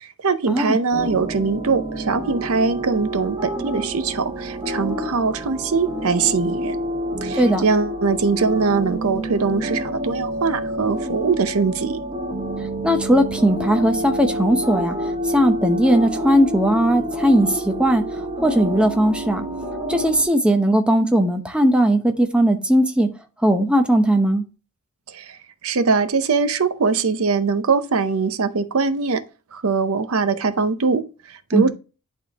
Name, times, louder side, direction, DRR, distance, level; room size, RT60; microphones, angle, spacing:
voice 1, 0.0-6.8 7.2-12.0 25.1-25.4 25.6-29.2 29.5-31.7, right 4 dB, 70° right, 0.6 m, -22 dB
sound 1, 0.9-20.2, equal, 25° right, 1.8 m, -28 dB
voice 2, 12.8-15.0 15.2-18.0 18.4-19.4 19.9-23.1 23.4-24.4 31.5-31.7, right 1 dB, 5° right, 0.7 m, -18 dB
11.0 x 3.7 x 2.9 m
head